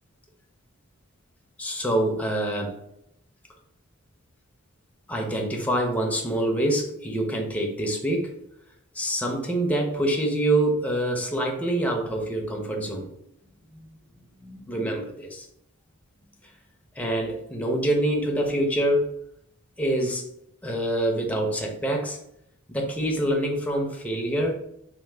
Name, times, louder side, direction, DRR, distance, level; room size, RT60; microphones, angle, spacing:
voice 1, 1.6-2.8 5.1-8.3 8.9-13.1 14.4-15.5 17.0-19.1 19.8-20.2 20.6-22.2 22.7-24.6, right 1 dB, 5° left, 0 dB, 0.5 m, -26 dB
3.1 x 2.1 x 3.2 m, 0.76 s
head